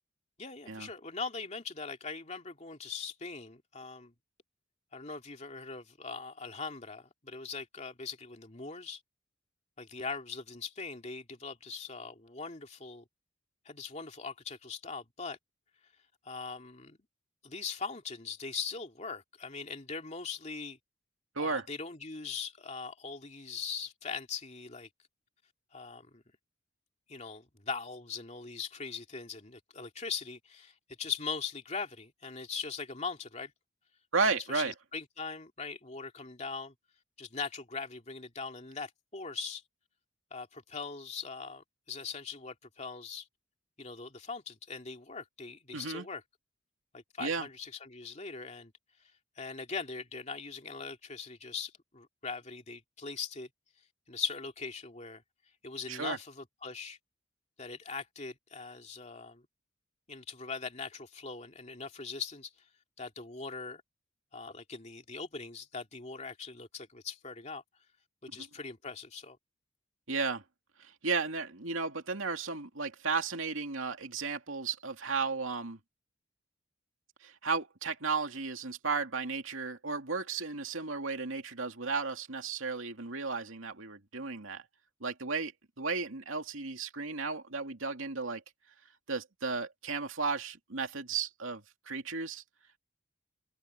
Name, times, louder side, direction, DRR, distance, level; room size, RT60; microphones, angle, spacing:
voice 1, 0.4-4.1 4.9-9.0 9.8-13.0 13.6-15.4 16.2-17.0 17.4-20.8 21.4-24.9 25.7-26.2 27.1-33.5 34.2-36.7 37.2-39.6 40.3-43.3 43.8-46.2 46.9-48.7 49.4-53.5 54.1-55.2 55.6-57.0 57.6-59.5 60.1-62.5 63.0-63.8 64.3-67.6 68.2-69.4, left 5 dB, 35° left, 2.6 m, -41 dB
voice 2, 21.3-21.7 34.1-34.7 45.7-46.1 47.2-47.5 55.9-56.2 68.3-68.5 70.1-70.4 70.8-75.8 77.2-84.6 85.0-85.5 85.8-88.4 89.1-92.4, right 4 dB, 85° right, 2.6 m, -34 dB
open air
head